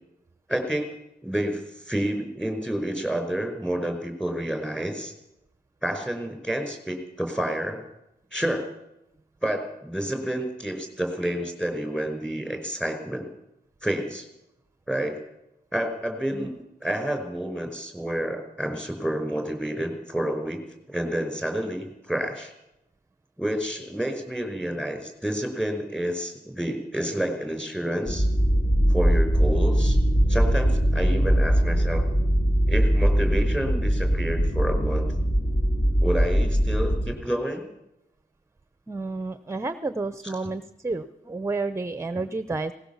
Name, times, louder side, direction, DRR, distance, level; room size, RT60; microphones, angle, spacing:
voice 1, 0.5-0.9 1.2-5.1 5.8-7.8 8.3-8.7 9.4-13.3 13.8-14.3 14.9-15.2 15.7-20.6 20.9-22.5 23.4-28.3 28.9-30.0 30.3-32.0 32.7-35.1 36.0-37.7 40.2-40.3, right 1 dB, 5° left, 5 dB, 5.2 m, -29 dB
sound 1, 28.1-37.1, equal, 30° left, 2.5 m, -21 dB
voice 2, 38.9-42.7, right 3 dB, 15° right, 12 dB, 0.8 m, -30 dB
19.5 x 18.5 x 7.2 m, 0.88 s
wide cardioid pair, 110°, 17 cm